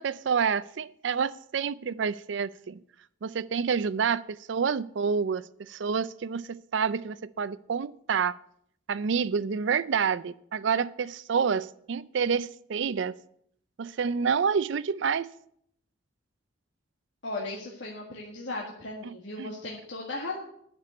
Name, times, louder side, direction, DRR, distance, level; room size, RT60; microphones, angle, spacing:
voice 1, 0.0-2.8 3.2-8.4 8.9-13.1 13.8-15.3 19.0-19.5, right 6 dB, 65° right, 18 dB, 0.4 m, -28 dB
voice 2, 17.2-20.4, left 2 dB, 65° left, -3 dB, 1.8 m, -36 dB
9.6 x 6.8 x 8.1 m, 0.69 s
head